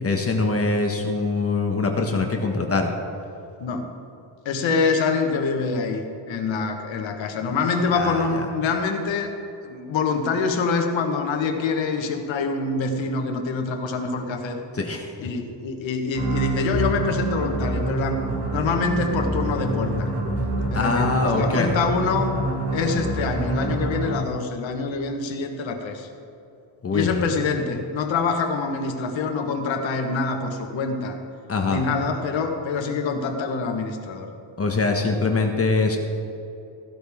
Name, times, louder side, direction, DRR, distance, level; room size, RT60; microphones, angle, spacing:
voice 1, 0.0-2.9 7.9-8.4 14.8-15.0 20.7-21.7 26.8-27.2 31.5-31.8 34.6-36.0, left 3 dB, 30° left, 2 dB, 1.3 m, -23 dB
voice 2, 3.6-4.0 4.4-9.3 9.6-14.6 15.2-20.1 20.7-26.1 26.9-31.2 31.6-34.3, left 4 dB, 70° left, 4 dB, 1.5 m, -25 dB
sound 1, 16.1-24.4, right 1 dB, 60° right, 2.6 m, -26 dB
15.5 x 12.0 x 3.6 m, 2.7 s
cardioid pair, 120°, 48 cm